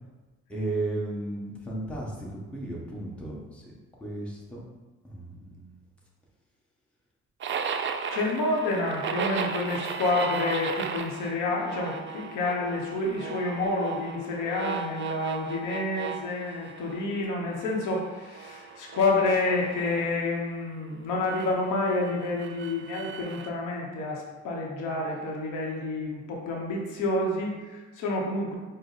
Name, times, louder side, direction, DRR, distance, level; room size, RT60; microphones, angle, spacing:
voice 1, 0.5-3.7 4.0-4.6 5.0-5.8, right 2 dB, 5° left, -5 dB, 1.1 m, -34 dB
sound 1, 7.4-17.2 17.5-20.1 21.3-23.5, right 5 dB, 40° right, 0.4 m, -36 dB
voice 2, 8.1-28.5, left 2 dB, 90° left, -2 dB, 0.9 m, -29 dB
5.0 x 2.1 x 4.0 m, 1.3 s
cardioid pair, 90°, 30 cm